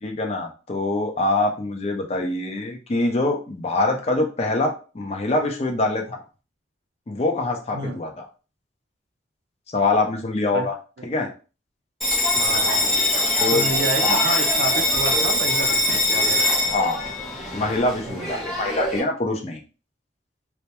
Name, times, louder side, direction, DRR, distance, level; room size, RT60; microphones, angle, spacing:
voice 1, 0.0-6.2 7.1-8.3 9.7-10.7 11.0-11.3 13.2-13.6 14.0-14.2 16.7-17.0 17.5-19.6, left 2 dB, 35° left, 3 dB, 0.4 m, -24 dB
Bell, 12.0-19.0, left 1 dB, ahead, 0.7 m, -22 dB
voice 2, 12.3-12.8 13.5-16.4 18.1-18.3, right 3 dB, 60° right, 4 dB, 0.5 m, -29 dB
2.2 x 2.1 x 2.8 m, 0.34 s
head